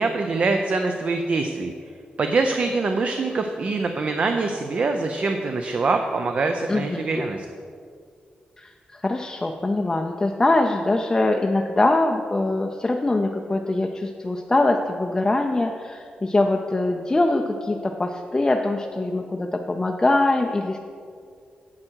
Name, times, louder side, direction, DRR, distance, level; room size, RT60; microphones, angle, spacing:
voice 1, 0.0-1.7 2.2-7.5, right 3 dB, 45° right, 5 dB, 0.5 m, -24 dB
voice 2, 6.7-7.0 8.6-20.8, left 2 dB, 20° left, 2 dB, 0.4 m, -23 dB
9.7 x 7.7 x 4.6 m, 2.2 s
wide cardioid pair, 160°, 3 cm